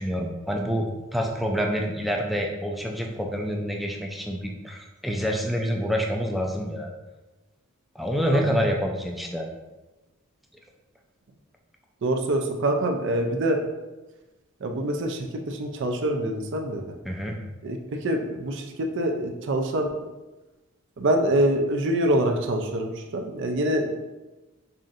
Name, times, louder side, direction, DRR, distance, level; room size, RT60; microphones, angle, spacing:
voice 1, 0.0-6.9 8.0-9.5 17.1-17.4, equal, ahead, 0 dB, 0.4 m, -27 dB
voice 2, 8.3-8.6 12.0-13.6 14.6-16.8 17.6-19.9 21.0-24.1, right 1 dB, 60° right, 4 dB, 0.5 m, -25 dB
5.5 x 2.5 x 2.5 m, 1.1 s
head